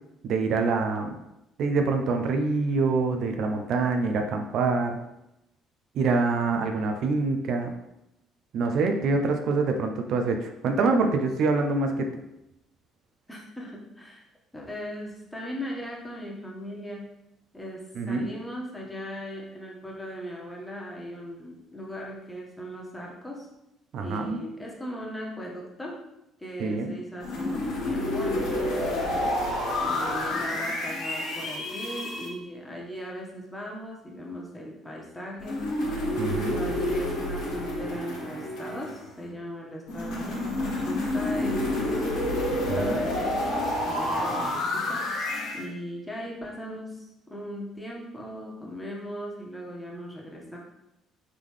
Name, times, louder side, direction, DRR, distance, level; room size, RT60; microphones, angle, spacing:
voice 1, 0.2-1.1 1.6-5.0 5.9-7.7 8.5-12.1 18.0-18.3 23.9-24.4 26.6-26.9 36.2-36.6 42.7-43.0, right 4 dB, 65° right, 5 dB, 0.5 m, -25 dB
voice 2, 13.3-14.2 14.5-17.1 17.5-17.8 18.1-23.5 24.0-26.0 26.4-29.5 29.8-35.6 36.1-42.0 42.6-45.0 45.5-50.6, equal, 10° left, -2 dB, 1.3 m, -38 dB
sound 1, 27.2-32.3 35.4-39.2 39.9-45.6, left 1 dB, 75° left, 1.3 m, -29 dB
3.7 x 3.6 x 3.2 m, 0.87 s
supercardioid pair, 70°, 0 cm